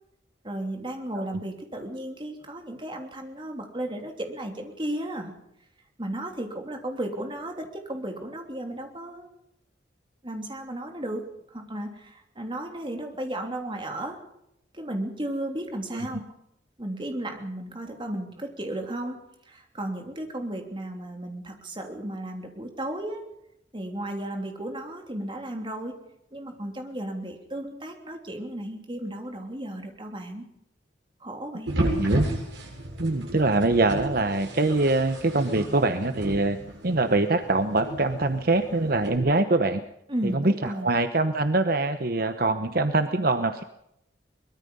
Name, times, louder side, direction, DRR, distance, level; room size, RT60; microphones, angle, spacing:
voice 1, 0.4-5.3 6.0-9.3 10.2-14.2 14.7-16.3 16.8-19.2 19.5-23.3 23.7-26.0 26.3-30.4 31.2-31.9 40.1-40.9, right 1 dB, 25° right, 3 dB, 3.1 m, -34 dB
sound 1, 31.7-39.2, right 1 dB, 90° right, 7.8 m, -33 dB
voice 2, 31.8-32.2 33.0-36.6 36.8-39.8 40.3-43.6, right 2 dB, 55° right, 8 dB, 1.0 m, -24 dB
23.5 x 21.0 x 5.5 m, 0.78 s
head